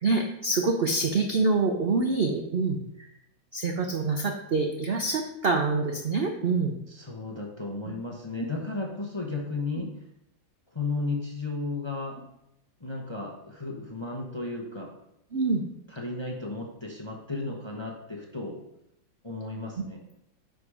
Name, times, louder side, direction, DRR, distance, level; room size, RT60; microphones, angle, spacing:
voice 1, 0.0-3.1 3.5-6.8 15.3-15.6, right 3 dB, 80° right, 2 dB, 0.5 m, -26 dB
voice 2, 6.9-9.9 10.7-12.2 12.8-14.9 15.9-18.6 19.2-20.0, left 3 dB, 25° left, -1 dB, 0.6 m, -34 dB
10.0 x 3.9 x 4.9 m, 0.82 s
omnidirectional pair, 2.0 m